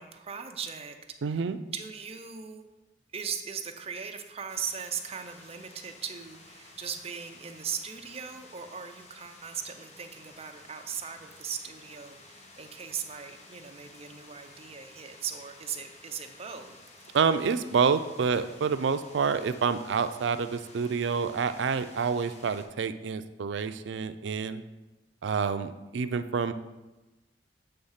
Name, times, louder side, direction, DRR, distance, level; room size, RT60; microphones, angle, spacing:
voice 1, 0.0-1.5 1.7-2.7 3.1-16.8, right 7 dB, 35° right, 6 dB, 0.6 m, -39 dB
voice 2, 1.2-1.6 17.1-24.6 25.2-26.5, right 5 dB, 85° right, 11 dB, 0.4 m, -28 dB
sound 1, 4.5-22.7, left 2 dB, 40° left, 1.0 m, -53 dB
7.7 x 3.5 x 5.6 m, 1.1 s
head